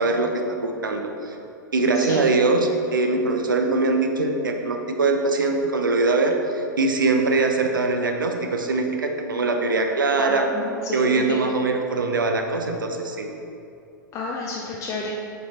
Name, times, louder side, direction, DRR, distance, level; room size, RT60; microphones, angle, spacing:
voice 1, 0.0-1.4 1.7-10.5 10.9-13.3, right 3 dB, 75° right, 4 dB, 0.8 m, -22 dB
voice 2, 2.0-2.3 10.2-11.5 14.1-15.1, left 3 dB, 30° left, -2 dB, 0.6 m, -31 dB
8.1 x 4.5 x 4.3 m, 2.7 s
figure-of-eight pair, 100°, 11 cm